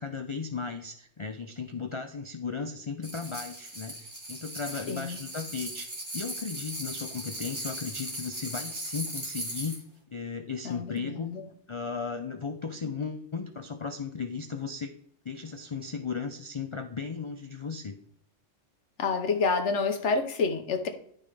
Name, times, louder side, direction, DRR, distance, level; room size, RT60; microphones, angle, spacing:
voice 1, 0.0-9.8 10.1-11.4 11.7-14.9 15.2-17.9, left 5 dB, 50° left, 7 dB, 0.3 m, -36 dB
sound 1, 3.0-9.8, right 1 dB, 65° right, 2.9 m, -38 dB
voice 2, 4.9-5.2 10.6-11.4 19.0-20.9, left 4 dB, 70° left, 6 dB, 1.3 m, -28 dB
11.5 x 5.3 x 3.3 m, 0.68 s
omnidirectional pair, 1.3 m